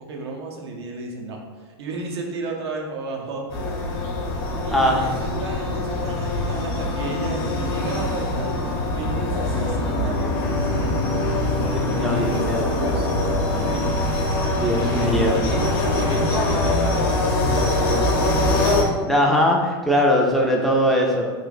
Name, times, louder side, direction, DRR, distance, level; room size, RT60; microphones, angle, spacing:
voice 1, 0.1-3.5 4.6-8.6 9.0-11.7 11.9-13.9 14.9-16.8 17.4-18.7, right 3 dB, 85° right, 1 dB, 0.7 m, -33 dB
sound 1, 3.5-18.8, left 2 dB, 65° left, 0.8 m, -23 dB
voice 2, 4.7-5.0 11.7-12.6 14.5-15.4 19.0-21.3, equal, ahead, -2 dB, 0.5 m, -20 dB
sound 2, 9.3-14.2, left 2 dB, 35° left, 0.9 m, -40 dB
3.2 x 2.4 x 3.9 m, 1.4 s
supercardioid pair, 120°, 13 cm